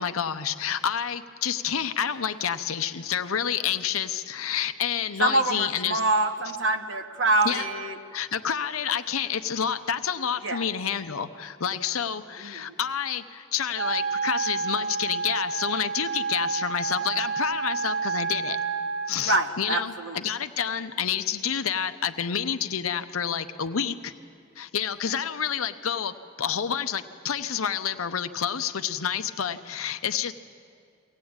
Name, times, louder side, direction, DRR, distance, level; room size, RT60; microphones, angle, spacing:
voice 1, 0.0-6.0 7.4-7.6 8.1-18.6 19.1-24.1 24.6-30.3, left 8 dB, 85° left, 10 dB, 0.7 m, -29 dB
voice 2, 5.2-7.9 10.4-10.6 12.4-12.6 19.3-20.1, right 2 dB, 60° right, 5 dB, 1.3 m, -25 dB
Wind instrument woodwind instrument, 13.7-19.1, right 5 dB, 85° right, 1.7 m, -29 dB
23.0 x 18.0 x 8.8 m, 2.3 s
head